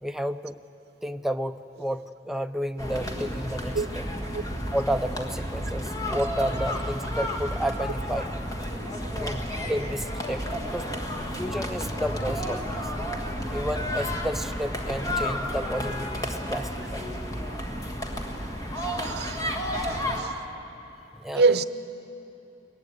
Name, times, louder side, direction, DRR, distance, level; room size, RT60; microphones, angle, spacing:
voice 1, 0.0-0.6 1.0-4.1 4.7-8.3 9.1-10.9 11.3-12.9 13.5-17.1 17.5-17.6 21.1-21.6, equal, ahead, 0.4 m, -31 dB
sound 1, 2.8-20.2, equal, 20° left, 1.7 m, -31 dB
voice 2, 19.0-19.4 19.7-20.3 21.4-21.6, right 4 dB, 65° right, 0.7 m, -24 dB
20.5 x 15.5 x 9.6 m
head